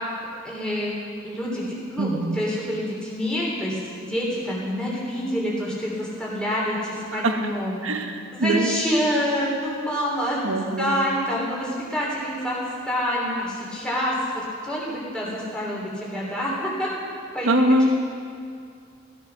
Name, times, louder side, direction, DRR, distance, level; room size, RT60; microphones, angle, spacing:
voice 1, 0.4-1.0 1.2-1.6 1.9-7.9 8.3-10.4 10.8-12.6 12.8-16.9 17.3-17.5, equal, 5° left, -6 dB, 3.2 m, -27 dB
voice 2, 2.0-2.4 7.1-7.5 7.8-8.8 10.4-11.0 17.4-17.9, right 1 dB, 90° right, 5 dB, 1.3 m, -23 dB
15.5 x 14.5 x 5.9 m, 2.3 s
head